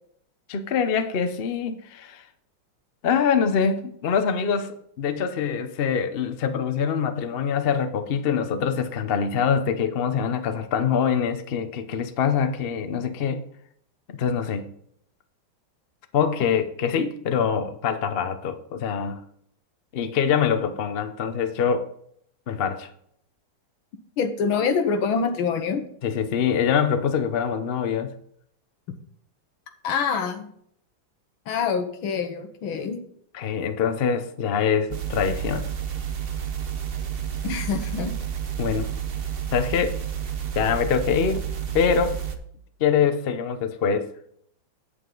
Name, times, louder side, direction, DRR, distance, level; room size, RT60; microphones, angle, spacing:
voice 1, 0.5-2.2 3.0-13.4 14.1-14.7 16.1-19.2 19.9-21.8 22.5-22.9 26.0-28.1 33.3-35.7 38.6-38.9 39.5-40.0 40.5-41.4 41.7-42.2 42.8-44.1, left 7 dB, 65° left, 0.5 m, -24 dB
voice 2, 24.2-25.9 29.8-30.5 31.5-33.0 37.4-38.1, left 6 dB, 90° left, 1.9 m, -25 dB
sound 1, 34.9-42.4, right 9 dB, 85° right, 0.5 m, -30 dB
8.4 x 7.8 x 3.9 m
omnidirectional pair, 2.2 m